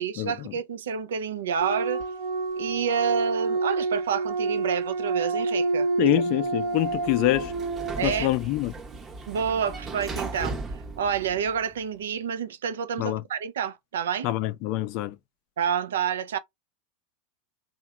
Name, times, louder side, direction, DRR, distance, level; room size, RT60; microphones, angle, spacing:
voice 1, 0.0-2.0 2.5-5.9 8.0-8.3 9.3-14.3 15.6-16.4, right 7 dB, 90° right, 0.3 m, -28 dB
sound 1, 1.6-8.2, right 3 dB, 65° right, 0.7 m, -28 dB
voice 2, 6.0-7.5 8.0-8.7 13.0-13.2 14.2-15.2, left 16 dB, 55° left, 0.4 m, -25 dB
Sliding door, 6.6-11.9, right 3 dB, 25° right, 0.7 m, -37 dB
2.8 x 2.1 x 2.3 m
hypercardioid pair, 115°, 0 cm